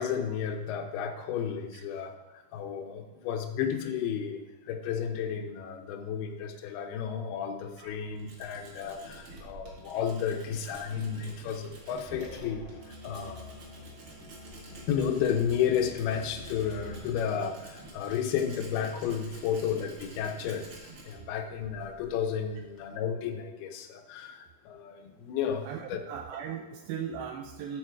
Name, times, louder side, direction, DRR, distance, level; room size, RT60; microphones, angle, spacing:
voice 1, 0.0-12.7 13.0-13.5 14.9-26.0, left 8 dB, 90° left, 5 dB, 2.7 m, -32 dB
Tools, 7.6-23.0, right 2 dB, 45° right, 2.1 m, -49 dB
Musical instrument, 12.0-17.2, left 3 dB, 60° left, 0.5 m, -47 dB
voice 2, 25.7-27.8, right 7 dB, 80° right, 4 dB, 2.4 m, -38 dB
13.0 x 4.6 x 4.6 m, 1.1 s
omnidirectional pair, 4.4 m